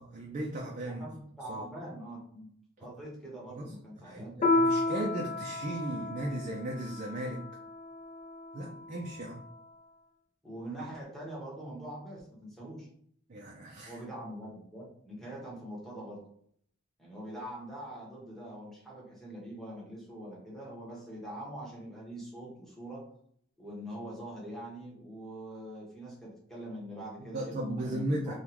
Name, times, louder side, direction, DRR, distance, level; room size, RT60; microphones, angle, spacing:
voice 1, 0.0-1.1 1.5-1.7 2.8-2.9 3.5-3.7 4.0-7.5 8.5-9.4 13.3-14.0 27.2-28.4, right 1 dB, 40° right, 0 dB, 0.4 m, -36 dB
voice 2, 0.8-2.5 2.8-4.3 10.4-12.9 13.9-16.2 17.0-23.0 23.6-28.4, right 1 dB, ahead, -6 dB, 1.1 m, -43 dB
Piano, 4.4-9.4, left 2 dB, 40° left, 0.5 m, -32 dB
3.6 x 2.3 x 2.9 m, 0.64 s
head